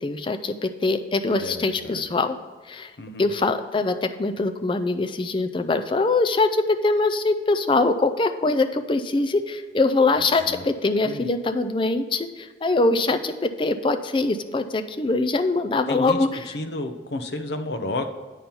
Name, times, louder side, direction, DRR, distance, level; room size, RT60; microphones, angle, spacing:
voice 1, 0.0-2.4 2.7-2.9 3.2-16.5, left 3 dB, 25° left, 8 dB, 0.4 m, -23 dB
voice 2, 1.4-2.0 3.0-3.3 10.2-10.7 11.0-11.3 15.9-16.2 16.5-18.1, left 2 dB, 65° left, 7 dB, 0.7 m, -31 dB
9.0 x 4.4 x 5.4 m, 1.4 s
head